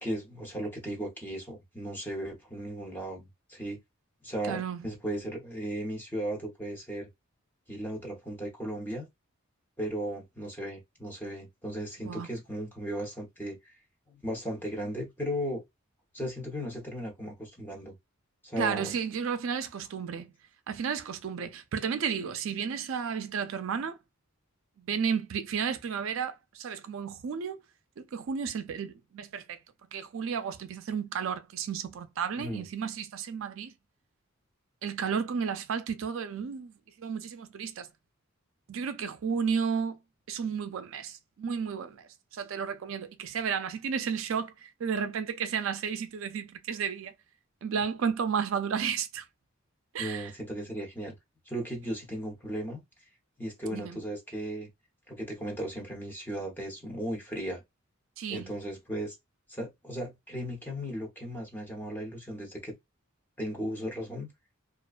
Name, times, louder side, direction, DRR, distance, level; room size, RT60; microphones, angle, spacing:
voice 1, 0.0-3.8 4.2-7.1 7.7-9.1 9.8-13.8 14.1-15.6 16.1-17.9 18.4-18.9 32.4-32.7 47.7-47.8 50.0-51.2 51.5-52.8 53.4-54.7 55.1-57.6 58.3-59.2 59.5-62.7 63.4-64.3, equal, 10° left, 0.8 m, -36 dB
voice 2, 4.4-4.9 12.0-12.3 18.6-20.3 20.7-24.0 24.8-27.6 28.0-29.6 29.9-33.7 34.8-36.7 37.0-37.9 38.7-40.0 40.3-47.1 47.6-49.2 49.9-50.3 53.7-54.0 58.2-58.5, right 6 dB, 65° right, 0.4 m, -33 dB
2.4 x 2.2 x 2.4 m
head